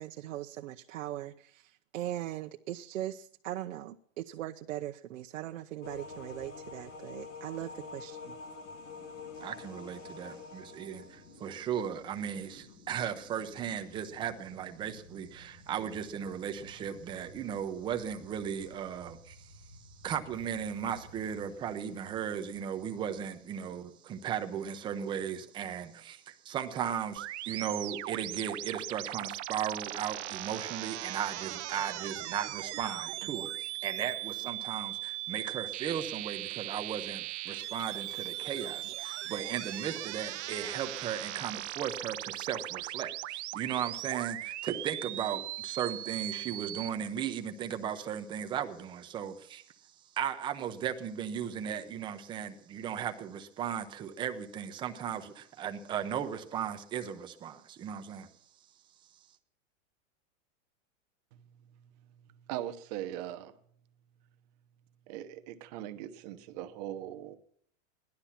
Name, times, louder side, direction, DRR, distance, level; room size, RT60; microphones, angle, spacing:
voice 1, 0.0-8.4, right 13 dB, 90° right, 0.9 m, -40 dB
sound 1, 5.8-23.9, left 4 dB, 65° left, 3.3 m, -50 dB
voice 2, 9.4-58.3, right 8 dB, 10° right, 0.7 m, -36 dB
sound 2, 27.2-46.9, right 16 dB, 65° right, 0.7 m, -39 dB
voice 3, 62.5-63.5 65.1-67.4, right 12 dB, 35° right, 1.0 m, -40 dB
17.5 x 12.0 x 5.8 m
supercardioid pair, 170°, 38 cm